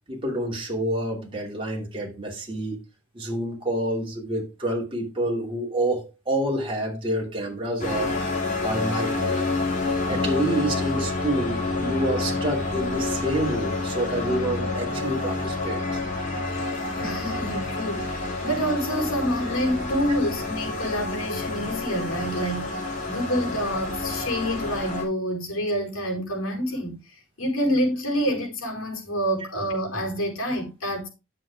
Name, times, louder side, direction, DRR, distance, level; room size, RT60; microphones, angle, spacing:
voice 1, 0.1-2.8 3.1-8.2 8.6-9.5 10.1-16.0, right 1 dB, 25° right, 2.8 m, -28 dB
sound 1, 7.8-25.0, left 3 dB, 35° left, 3.8 m, -28 dB
voice 2, 17.0-27.0 27.4-31.1, equal, 75° left, 4.6 m, -27 dB
10.0 x 6.8 x 3.6 m
head